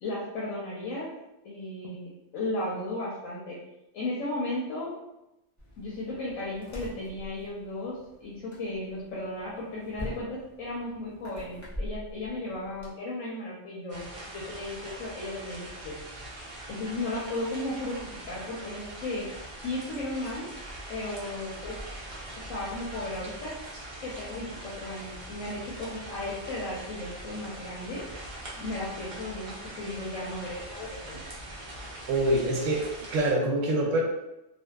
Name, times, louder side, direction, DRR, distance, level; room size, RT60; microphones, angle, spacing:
voice 1, 0.0-1.1 1.4-3.6 3.9-5.0 5.8-16.0 16.7-19.3 19.6-20.5 20.9-21.8 22.5-23.6 24.0-28.1 28.6-31.2, left 2 dB, 85° left, -6 dB, 1.0 m, -35 dB
sound 1, 5.6-12.9, equal, 25° left, 0.4 m, -43 dB
sound 2, 13.9-33.3, right 1 dB, 50° right, 0.4 m, -42 dB
voice 2, 32.1-32.9 33.1-34.0, right 1 dB, 85° right, 0 dB, 1.0 m, -25 dB
2.6 x 2.3 x 2.2 m, 0.91 s
omnidirectional pair, 1.3 m